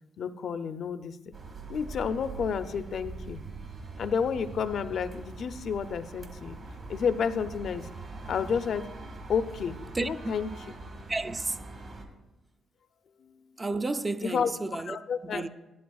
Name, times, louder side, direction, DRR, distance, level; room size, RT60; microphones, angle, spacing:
voice 1, 0.2-1.3 1.7-3.4 4.0-6.6 6.9-7.9 8.3-8.9 9.3-10.5 13.2-13.4 14.2-14.5 14.8-15.4, left 6 dB, 60° left, 0.5 m, -30 dB
sound 1, 1.3-12.1, right 3 dB, 50° right, 1.5 m, -43 dB
voice 2, 11.1-11.6 13.6-15.0 15.2-15.5, right 2 dB, 20° right, 0.4 m, -31 dB
12.0 x 11.5 x 2.3 m
cardioid pair, 90°, 0 cm